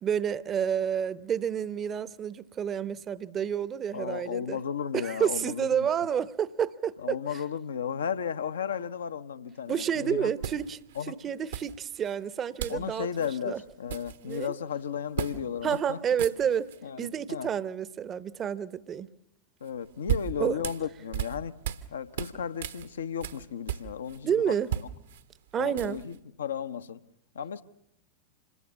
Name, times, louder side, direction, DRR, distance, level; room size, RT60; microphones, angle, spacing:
voice 1, 0.0-4.6 4.9-7.4 9.7-10.8 11.1-13.6 14.2-14.5 15.6-16.7 17.0-19.1 20.4-20.6 24.2-24.7 25.5-26.0, right 8 dB, 25° right, 0.8 m, -29 dB
voice 2, 3.9-5.9 7.0-10.3 11.0-11.1 12.7-16.0 16.8-17.5 19.6-21.5 21.9-24.4 25.6-27.0 27.3-27.6, left 8 dB, 65° left, 0.9 m, -34 dB
sound 1, 9.7-9.9 10.4-11.0 11.5-12.1 12.6-12.9 13.1-13.3 13.7-14.5 15.2-15.4 15.7-15.8 16.1-16.8 19.7-21.9 22.2-24.2 24.5-26.2, right 10 dB, 65° right, 1.1 m, -35 dB
26.5 x 20.5 x 7.2 m
figure-of-eight pair, 90°, 0 cm